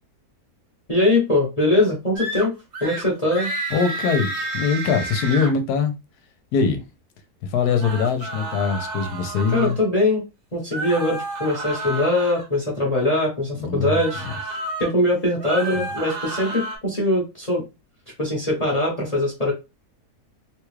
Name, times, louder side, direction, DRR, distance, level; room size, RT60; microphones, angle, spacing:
voice 1, 0.9-3.5 9.5-10.2 10.5-14.2 14.8-17.6 18.2-19.5, left 1 dB, 25° left, 0.9 m, -22 dB
sound 1, 2.2-2.5 2.7-3.0 3.3-5.5 7.6-9.8 10.7-12.5 13.9-14.9 15.3-16.8, right 2 dB, 70° right, 1.8 m, -30 dB
voice 2, 3.7-5.9 6.5-6.8 7.5-9.8 13.6-14.3, left 5 dB, 75° left, 1.2 m, -22 dB
3.5 x 2.3 x 3.1 m
omnidirectional pair, 1.8 m